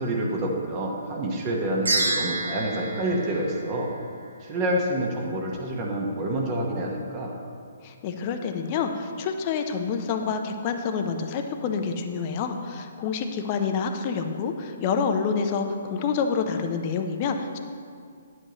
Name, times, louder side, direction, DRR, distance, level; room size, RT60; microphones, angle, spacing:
voice 1, 0.0-3.9 4.4-7.3, right 1 dB, 30° right, -1 dB, 1.3 m, -28 dB
sound 1, 1.9-4.3, right 2 dB, 80° right, 1.5 m, -29 dB
voice 2, 7.8-17.6, left 5 dB, 35° left, 6 dB, 0.7 m, -27 dB
10.5 x 7.8 x 3.1 m, 2.2 s
figure-of-eight pair, 135°, 0 cm